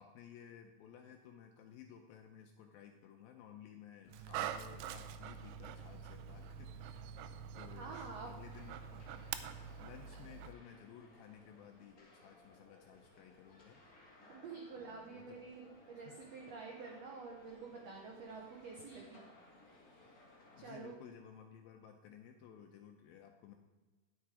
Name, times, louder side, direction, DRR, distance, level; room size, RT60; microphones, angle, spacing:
voice 1, 0.0-7.0 7.6-8.8 9.8-13.8 14.8-15.4 20.5-23.5, left 8 dB, 80° left, 4 dB, 2.3 m, -56 dB
sound 1, 4.1-10.2, right 9 dB, 45° right, 1.9 m, -55 dB
Dog, 4.1-10.5, right 9 dB, 90° right, 2.6 m, -46 dB
voice 2, 7.7-8.3 14.3-19.2 20.6-20.9, right 4 dB, 70° right, -1 dB, 1.6 m, -48 dB
sound 2, 8.5-20.8, left 2 dB, 45° left, 1.1 m, -62 dB
10.0 x 7.4 x 4.8 m, 1.2 s
omnidirectional pair, 4.5 m